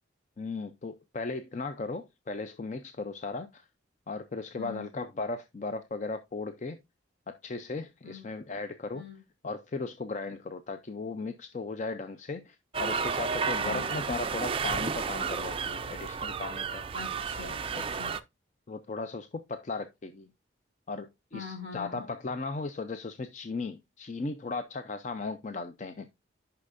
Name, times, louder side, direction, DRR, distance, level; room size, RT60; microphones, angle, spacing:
voice 1, 0.4-3.7 4.1-6.8 7.3-9.0 9.4-16.8 18.7-20.3 20.9-26.1, left 3 dB, 40° left, 0.4 m, -37 dB
voice 2, 4.6-4.9 8.0-8.2 8.9-9.2 13.6-13.9 16.9-18.1 21.3-22.0, left 6 dB, 65° left, 4.1 m, -43 dB
sound 1, 12.7-18.2, right 5 dB, 30° right, 0.4 m, -32 dB
9.7 x 5.7 x 2.5 m
head